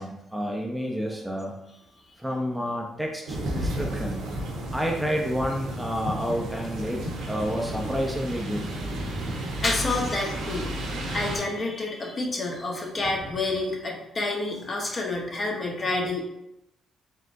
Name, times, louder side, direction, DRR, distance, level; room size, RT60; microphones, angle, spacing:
voice 1, 0.0-1.6 2.2-4.2 4.7-8.7, equal, 5° right, 0 dB, 0.5 m, -30 dB
sound 1, 3.3-11.4, right 1 dB, 80° right, 1.0 m, -32 dB
voice 2, 9.3-16.2, left 2 dB, 40° left, 0 dB, 1.0 m, -29 dB
4.2 x 3.6 x 2.6 m, 0.85 s
cardioid pair, 90°, 0 cm